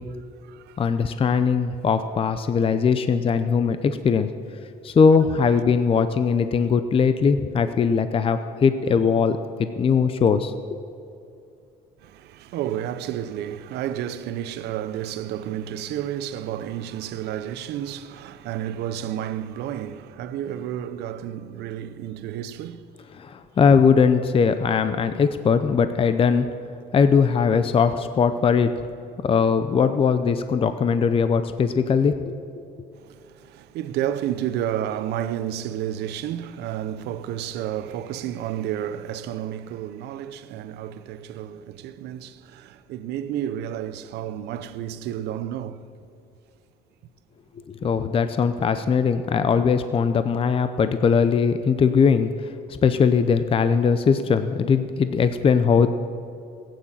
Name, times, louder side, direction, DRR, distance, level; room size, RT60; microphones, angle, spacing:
voice 1, 0.8-4.3 4.8-10.5 23.2-26.5 26.9-28.7 29.2-32.2 47.8-52.3 52.7-55.9, left 6 dB, 35° left, 0.6 m, -20 dB
voice 2, 12.0-22.9 23.6-23.7 33.1-45.8, right 11 dB, 80° right, 0.7 m, -31 dB
15.5 x 9.3 x 7.3 m
cardioid pair, 110°, 17 cm